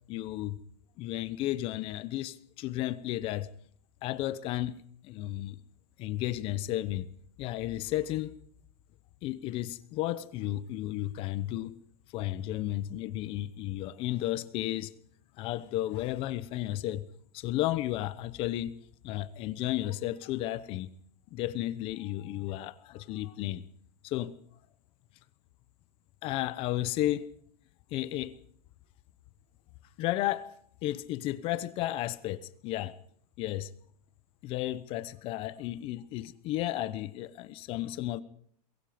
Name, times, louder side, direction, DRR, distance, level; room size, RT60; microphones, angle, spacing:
voice 1, 0.1-0.6 1.0-3.5 4.0-4.8 5.0-5.6 6.0-7.1 7.4-8.4 9.2-11.8 12.1-14.9 15.4-17.0 17.3-18.7 19.0-20.9 21.3-23.6 24.0-24.3 26.2-27.3 27.9-28.3 30.0-30.5 30.8-33.0 33.4-33.7 34.4-38.2, left 14 dB, 25° left, 0.9 m, -33 dB
24.0 x 22.5 x 5.1 m
supercardioid pair, 165°, 21 cm